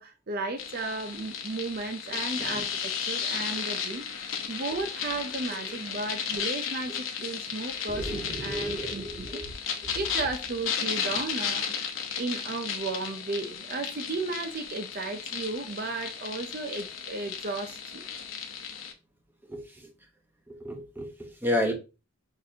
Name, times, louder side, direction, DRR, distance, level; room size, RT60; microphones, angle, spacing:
voice 1, 0.0-9.4 9.9-11.7 12.2-18.0, right 3 dB, 50° right, 0.5 m, -34 dB
sound 1, 0.6-18.9, left 7 dB, 80° left, 0.9 m, -34 dB
voice 2, 7.9-9.5 9.8-10.0 19.5-19.9 20.5-21.7, equal, 10° right, 1.0 m, -32 dB
6.4 x 2.6 x 2.7 m
head